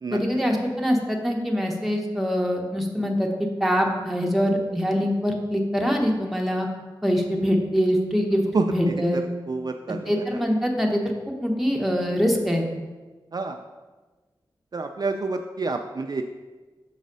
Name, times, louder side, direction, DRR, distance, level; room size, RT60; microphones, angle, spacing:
voice 1, 0.1-6.7 7.0-9.2 10.1-11.0 11.4-12.7, equal, ahead, 0 dB, 1.2 m, -24 dB
voice 2, 8.5-8.9 9.5-10.4 13.3-13.6 14.7-16.2, right 3 dB, 45° right, 5 dB, 0.4 m, -28 dB
6.5 x 4.0 x 5.4 m, 1.3 s
cardioid pair, 50°, 9 cm